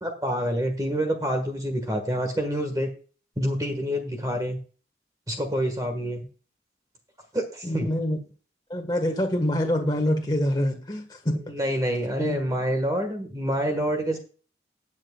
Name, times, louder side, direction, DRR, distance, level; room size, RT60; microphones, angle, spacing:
voice 1, 0.0-2.9 3.4-4.6 5.3-6.2 7.3-7.9 11.4-14.2, equal, 20° right, 5 dB, 1.6 m, -27 dB
voice 2, 7.6-8.2 8.7-11.4 12.2-12.4, left 1 dB, 25° left, 2 dB, 1.5 m, -25 dB
18.5 x 7.4 x 2.4 m, 0.38 s
head